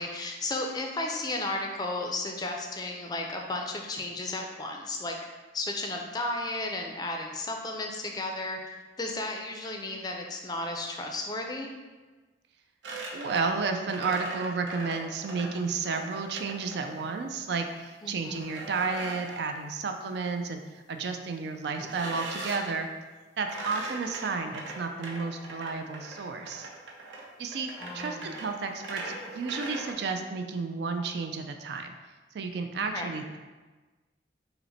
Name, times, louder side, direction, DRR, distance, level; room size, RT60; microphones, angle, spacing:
voice 1, 0.0-5.2 5.5-8.6 9.0-11.7 18.0-18.4 27.8-28.4 32.8-33.1, left 2 dB, 20° left, 2 dB, 0.4 m, -34 dB
sound 1, 12.8-17.1 18.3-19.5 21.8-22.8 23.4-29.9, right 2 dB, 90° right, 0.8 m, -40 dB
voice 2, 13.1-22.9 23.4-26.7 27.4-31.9 32.3-33.4, right 4 dB, 65° right, 5 dB, 0.4 m, -32 dB
5.6 x 2.1 x 4.0 m, 1.3 s
head